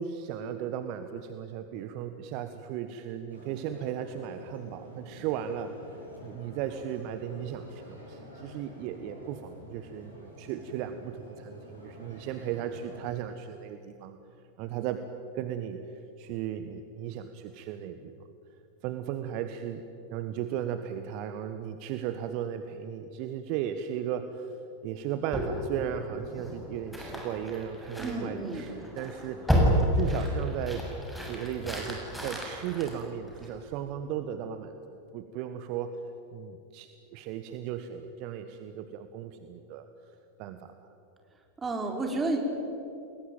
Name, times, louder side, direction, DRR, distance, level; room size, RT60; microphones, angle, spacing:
voice 1, 0.0-5.7 6.2-14.2 14.6-15.0 15.3-18.3 18.8-29.6 29.9-30.9 31.2-36.0 36.3-39.9 40.4-40.7, right 9 dB, 45° right, 9 dB, 1.3 m, -36 dB
sound 1, 3.3-13.1, left 1 dB, 85° right, 7.9 m, -48 dB
sound 2, 25.3-33.7, equal, ahead, 7.1 m, -31 dB
voice 2, 28.0-28.6 41.6-42.4, right 2 dB, 15° right, 3 dB, 4.6 m, -31 dB
29.5 x 21.0 x 9.1 m, 2.8 s
figure-of-eight pair, 90°, 0 cm